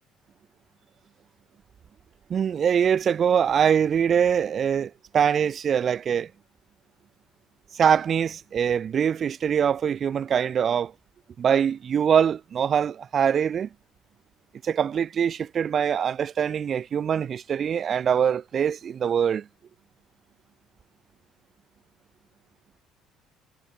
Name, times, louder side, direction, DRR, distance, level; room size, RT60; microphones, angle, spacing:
voice 1, 2.3-6.3 7.7-10.9 11.4-13.7 14.6-19.5, right 8 dB, 35° right, 1.3 m, -23 dB
cardioid pair, 150°, 0 cm